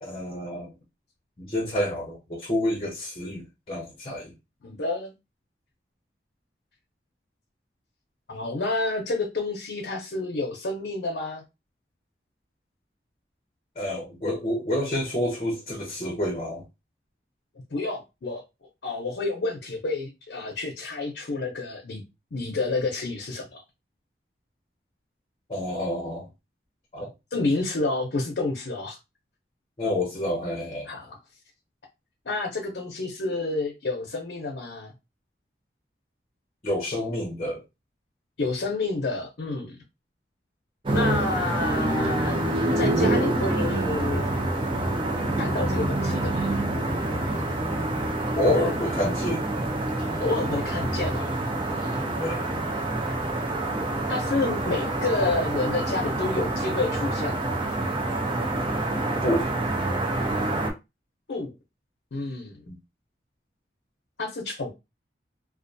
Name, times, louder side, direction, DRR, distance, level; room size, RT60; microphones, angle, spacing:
voice 1, 0.0-0.7 1.4-4.3 13.8-16.7 25.5-26.3 26.9-27.1 29.8-30.9 36.6-37.6 48.4-49.4 52.2-52.4 59.2-59.5 62.7-62.8, left 1 dB, 35° left, 0.6 m, -28 dB
voice 2, 4.6-5.1 8.3-11.4 17.7-18.4 18.8-22.0 22.3-23.6 27.3-29.0 30.9-31.2 32.3-34.9 38.4-39.8 40.9-42.4 42.8-44.3 45.4-46.6 50.2-51.4 51.7-52.0 54.1-57.7 61.3-61.5 62.1-62.7 64.2-64.7, left 3 dB, 75° left, 0.5 m, -29 dB
sound 1, 40.9-60.7, right 2 dB, 30° right, 0.4 m, -27 dB
2.3 x 2.2 x 2.6 m
head